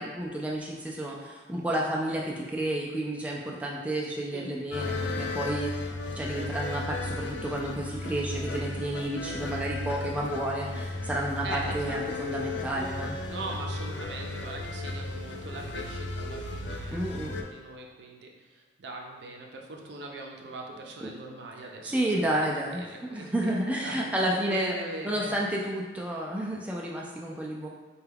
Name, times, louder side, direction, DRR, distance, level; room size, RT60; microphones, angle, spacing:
voice 1, 0.0-5.7 6.2-13.1 16.9-17.3 21.8-22.8 23.1-24.7 25.0-27.7, right 1 dB, 10° right, -3 dB, 0.3 m, -31 dB
sound 1, 4.7-17.4, left 2 dB, 85° left, 0.4 m, -35 dB
voice 2, 9.2-9.6 11.4-12.3 13.3-22.5 22.7-25.3, right 2 dB, 70° right, 1 dB, 0.5 m, -41 dB
4.4 x 2.3 x 3.4 m, 1.4 s
head